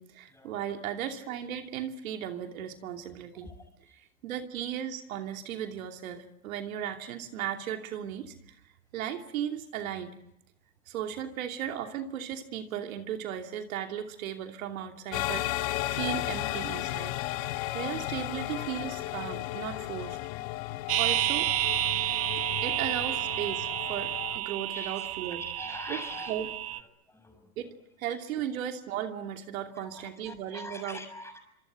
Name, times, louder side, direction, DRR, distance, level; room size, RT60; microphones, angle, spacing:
voice 1, 0.0-3.5 4.2-8.6 8.9-10.1 10.9-17.1 17.7-20.2 21.0-21.5 22.6-25.5 25.9-26.5 27.6-31.0, right 10 dB, 70° right, 5 dB, 2.9 m, -36 dB
sound 1, 15.1-24.4, left 17 dB, 50° left, 1.9 m, -34 dB
sound 2, 20.9-26.8, right 13 dB, 30° right, 1.4 m, -30 dB
voice 2, 24.7-26.3 27.1-27.5 29.8-31.4, left 1 dB, 5° left, 5 dB, 6.5 m, -43 dB
26.0 x 24.5 x 9.0 m, 0.79 s
hypercardioid pair, 130°, 42 cm